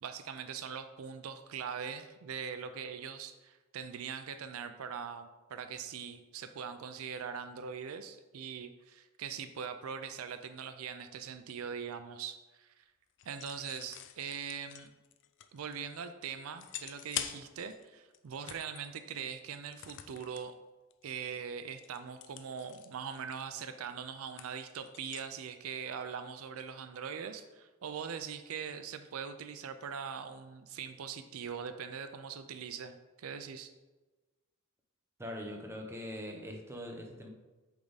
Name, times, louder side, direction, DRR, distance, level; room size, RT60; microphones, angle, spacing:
voice 1, 0.0-12.8 13.3-14.9 15.5-20.5 21.0-33.7, right 7 dB, 75° right, 9 dB, 0.4 m, -42 dB
sound 1, 13.2-16.0 16.6-17.9 18.1-18.9 19.7-20.5 20.9-21.1 21.4-25.3, left 10 dB, 60° left, 0.4 m, -45 dB
voice 2, 35.2-37.3, equal, 10° right, 1 dB, 0.8 m, -42 dB
8.2 x 3.5 x 4.0 m, 1.2 s
head